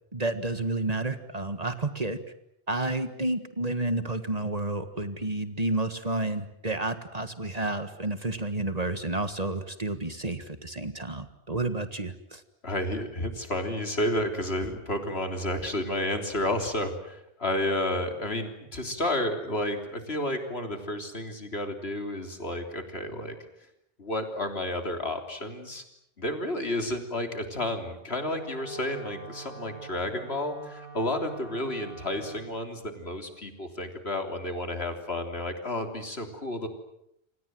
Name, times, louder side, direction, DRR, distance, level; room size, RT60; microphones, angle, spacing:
voice 1, 0.1-2.2 2.7-12.4, right 2 dB, 35° right, 10 dB, 1.7 m, -30 dB
voice 2, 12.6-23.4 24.0-25.8 26.2-36.7, left 1 dB, 65° left, 6 dB, 3.7 m, -31 dB
Wind instrument woodwind instrument, 28.0-32.5, right 4 dB, 55° right, 3.2 m, -45 dB
29.0 x 26.0 x 7.8 m, 0.76 s
omnidirectional pair, 1.1 m